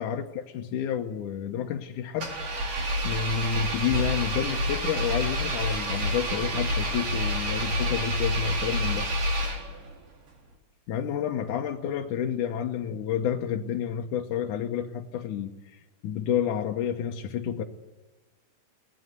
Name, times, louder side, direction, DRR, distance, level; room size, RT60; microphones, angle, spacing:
voice 1, 0.0-2.3 3.0-9.1 10.9-17.6, left 9 dB, 70° left, 3 dB, 1.9 m, -30 dB
Engine, 2.2-9.9, equal, 50° right, 5.1 m, -28 dB
22.0 x 18.5 x 8.2 m, 1.1 s
omnidirectional pair, 4.9 m